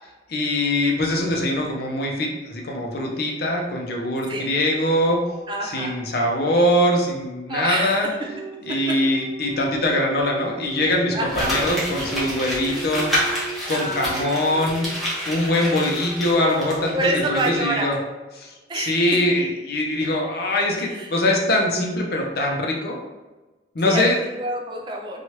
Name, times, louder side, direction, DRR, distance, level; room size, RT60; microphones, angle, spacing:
voice 1, 0.3-5.2 5.6-8.1 8.7-13.1 13.7-14.9 15.3-18.0 18.4-23.0 23.7-24.2, left 1 dB, 55° left, 0 dB, 0.5 m, -22 dB
sound 1, 4.7-7.1 8.2-17.7, right 4 dB, 85° left, 0.8 m, -39 dB
voice 2, 5.5-5.9 7.5-8.1 11.1-11.5 13.6-14.6 16.9-17.9 18.7-19.0 20.9-21.1 23.9-25.2, right 1 dB, 25° right, 0 dB, 0.3 m, -27 dB
Crumpling crinkling, 11.3-17.0 17.4-17.5, equal, ahead, 0.8 m, -28 dB
3.0 x 2.3 x 2.8 m, 1.2 s
head